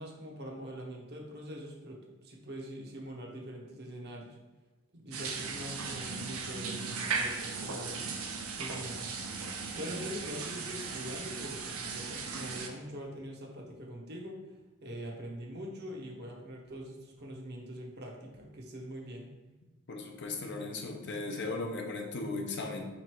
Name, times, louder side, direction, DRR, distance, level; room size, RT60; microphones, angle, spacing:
voice 1, 0.0-4.4 4.9-8.1 8.6-9.2 9.7-14.4 14.8-19.3, equal, 50° right, 0 dB, 0.8 m, -43 dB
sound 1, 5.1-12.7, right 5 dB, 80° right, 0.5 m, -37 dB
voice 2, 19.9-22.9, left 3 dB, 55° left, 2 dB, 0.6 m, -37 dB
3.8 x 3.0 x 4.5 m, 1.1 s
head